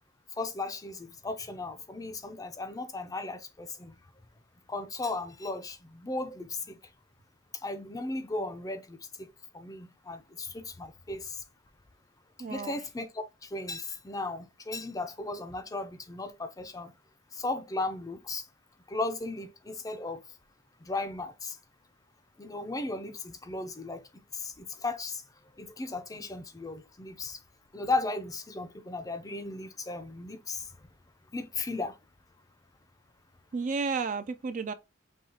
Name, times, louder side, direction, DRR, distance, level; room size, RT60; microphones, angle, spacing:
voice 1, 0.4-3.9 4.7-6.8 7.6-9.3 9.5-11.4 12.5-16.9 17.3-18.4 18.9-20.2 20.8-21.6 22.4-24.0 24.3-25.2 25.6-27.4 27.7-30.7 31.3-32.0, left 2 dB, 15° left, 0.5 m, -36 dB
voice 2, 12.4-12.8 33.5-34.7, right 4 dB, 40° right, 0.4 m, -32 dB
5.4 x 2.9 x 2.8 m
head